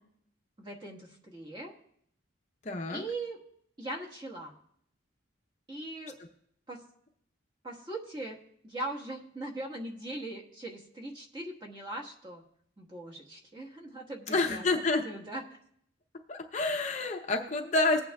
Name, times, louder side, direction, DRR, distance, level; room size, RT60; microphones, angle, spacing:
voice 1, 0.6-1.7 2.9-3.4 3.8-4.6 5.7-6.2 6.7-6.8 7.6-8.4 8.6-12.4 12.8-14.7 15.0-15.4, right 2 dB, 20° right, -2 dB, 1.4 m, -40 dB
voice 2, 2.6-3.0 14.3-15.0 16.3-18.0, left 3 dB, 35° left, 3 dB, 0.7 m, -28 dB
19.5 x 8.8 x 2.3 m, 0.70 s
head